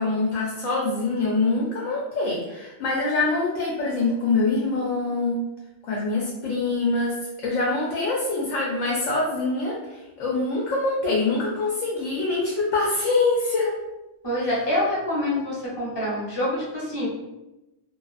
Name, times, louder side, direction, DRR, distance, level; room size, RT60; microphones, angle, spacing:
voice 1, 0.0-5.4 5.8-13.7 14.4-14.5, left 3 dB, 75° left, -3 dB, 0.9 m, -24 dB
voice 2, 14.2-17.1, left 1 dB, 25° left, -7 dB, 0.8 m, -26 dB
2.4 x 2.3 x 2.4 m, 0.99 s
omnidirectional pair, 1.4 m